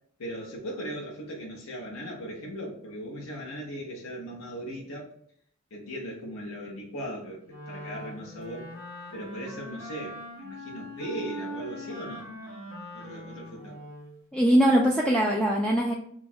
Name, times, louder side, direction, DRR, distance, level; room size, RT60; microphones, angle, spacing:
voice 1, 0.2-5.1 5.7-8.7 9.1-12.6 12.9-13.8, equal, 75° left, -2 dB, 0.8 m, -38 dB
Wind instrument woodwind instrument, 7.5-14.2, equal, 35° left, 1.3 m, -41 dB
voice 2, 14.3-15.9, equal, 5° left, -3 dB, 0.3 m, -21 dB
3.0 x 2.4 x 4.1 m, 0.65 s
head